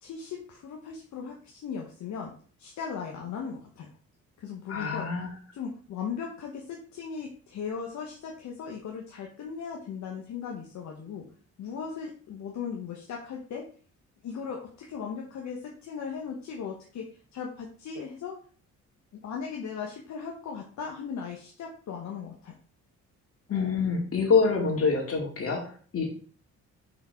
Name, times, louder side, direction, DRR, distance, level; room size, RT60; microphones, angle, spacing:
voice 1, 0.0-2.3 2.6-3.9 4.4-5.1 5.5-11.3 11.6-13.7 14.2-17.1 17.3-18.4 19.2-22.5, left 6 dB, 70° left, 0 dB, 1.2 m, -37 dB
voice 2, 4.7-5.3 23.5-26.1, left 5 dB, 50° left, 1 dB, 2.4 m, -26 dB
5.9 x 4.4 x 4.4 m, 0.43 s
cardioid pair, 90°, 30 cm